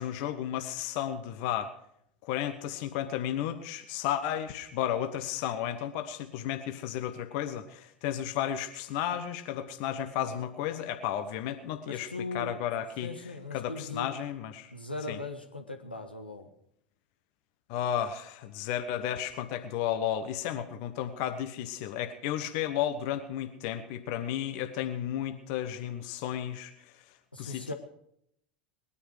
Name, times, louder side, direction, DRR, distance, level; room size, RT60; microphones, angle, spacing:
voice 1, 0.0-1.7 2.2-13.1 13.5-14.7 15.1-15.2 17.7-27.0 27.4-27.7, left 10 dB, 50° left, 8 dB, 1.1 m, -33 dB
voice 2, 11.8-12.6 13.0-14.1 14.7-16.5 27.3-27.7, left 2 dB, 85° left, 5 dB, 1.5 m, -39 dB
20.0 x 10.0 x 4.9 m, 0.73 s
figure-of-eight pair, 80°, 5 cm